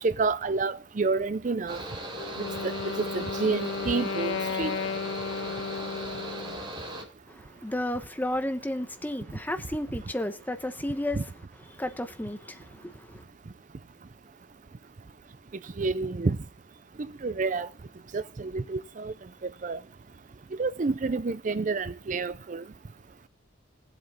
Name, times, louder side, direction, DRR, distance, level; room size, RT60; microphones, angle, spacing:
voice 1, 0.0-1.8 2.4-4.8 11.2-11.3 15.8-16.4 17.2-17.7 18.1-19.1 19.6-19.8 20.6-22.6, right 4 dB, 40° right, 0.5 m, -29 dB
Mechanical fan, 1.7-7.0, right 1 dB, 25° right, 2.5 m, -38 dB
Wind instrument woodwind instrument, 2.1-6.7, left 5 dB, 85° left, 0.5 m, -34 dB
voice 2, 7.3-11.2 11.7-13.2, left 1 dB, 10° left, 1.0 m, -33 dB
16.5 x 8.1 x 4.3 m
head